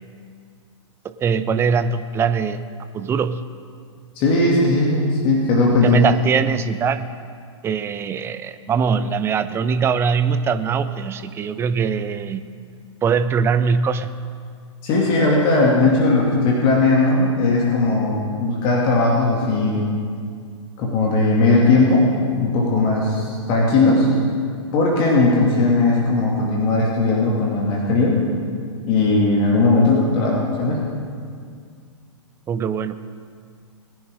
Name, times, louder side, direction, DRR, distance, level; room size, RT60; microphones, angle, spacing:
voice 1, 1.2-2.6 2.9-3.4 5.8-7.1 7.6-12.4 13.0-14.2 32.5-33.0, right 6 dB, 15° right, 12 dB, 0.6 m, -21 dB
voice 2, 4.2-6.0 14.8-19.9 20.8-24.1 24.7-28.2 28.9-30.9, left 2 dB, 35° left, -3 dB, 2.6 m, -18 dB
21.0 x 10.5 x 3.8 m, 2.1 s
figure-of-eight pair, 105°, 16 cm